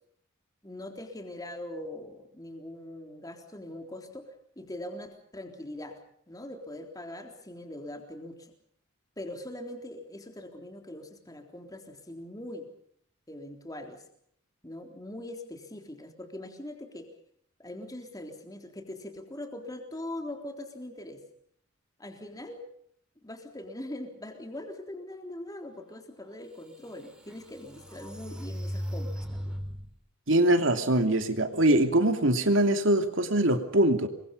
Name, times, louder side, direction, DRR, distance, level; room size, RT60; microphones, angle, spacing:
voice 1, 0.6-6.0 6.3-8.5 9.2-12.7 13.3-14.0 14.6-17.1 17.6-21.2 22.0-22.6 23.2-29.6, left 1 dB, 15° left, 4 dB, 3.7 m, -42 dB
sound 1, 26.2-26.3 26.8-30.0, equal, 5° right, 4.7 m, -37 dB
voice 2, 30.3-34.1, right 1 dB, 65° right, 6 dB, 2.9 m, -23 dB
28.0 x 23.0 x 5.5 m, 0.66 s
head